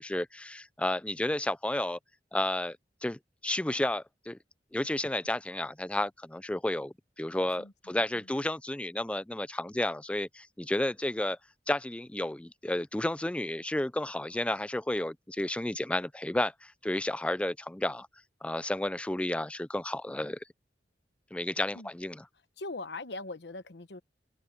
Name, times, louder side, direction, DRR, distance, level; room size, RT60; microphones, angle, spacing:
voice 1, 0.0-2.0 2.3-2.8 3.0-4.4 4.7-11.4 11.7-18.1 18.4-20.4 21.3-22.2, left 1 dB, 5° left, 0.4 m, -32 dB
voice 2, 7.3-8.3 21.7-21.9 22.6-24.0, left 2 dB, 70° left, 1.1 m, -42 dB
head